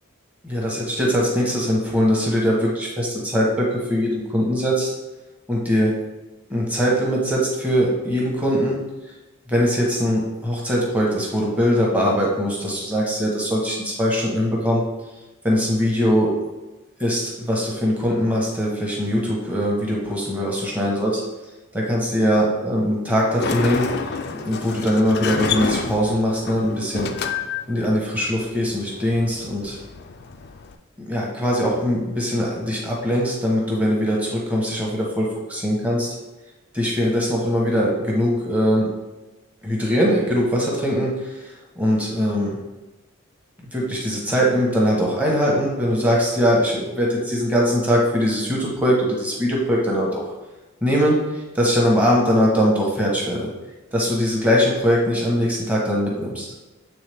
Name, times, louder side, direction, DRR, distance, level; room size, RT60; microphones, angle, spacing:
voice 1, 0.4-4.9 5.5-6.0 6.5-8.8 9.5-14.8 15.4-16.4 17.0-21.2 21.7-23.9 24.3-27.1 27.7-29.8 31.0-36.2 36.7-38.9 39.6-42.6 43.7-50.2 50.8-53.5 53.9-56.5, equal, 5° right, -3 dB, 1.0 m, -21 dB
Sliding door, 23.2-30.7, left 5 dB, 45° left, 0.4 m, -29 dB
8.0 x 3.4 x 3.4 m, 1.1 s
head